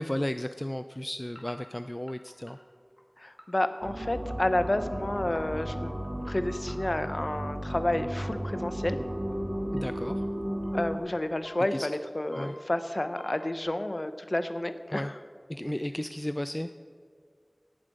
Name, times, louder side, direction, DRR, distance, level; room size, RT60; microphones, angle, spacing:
voice 1, 0.0-2.6 9.7-10.2 11.7-11.9 12.4-12.6 14.9-15.1 15.5-16.7, left 1 dB, 25° left, 10 dB, 0.3 m, -34 dB
sound 1, 1.4-6.3 6.7-8.1 8.5-8.9 9.3-9.4 9.8-10.8 11.5-13.6, equal, 5° left, 2.3 m, -50 dB
voice 2, 3.2-5.9 6.3-9.0 10.7-15.1, left 1 dB, 50° left, 10 dB, 0.7 m, -30 dB
sound 2, 3.8-11.0, equal, 50° right, 2.2 m, -34 dB
17.0 x 7.3 x 5.2 m, 2.1 s
wide cardioid pair, 45°, 0 cm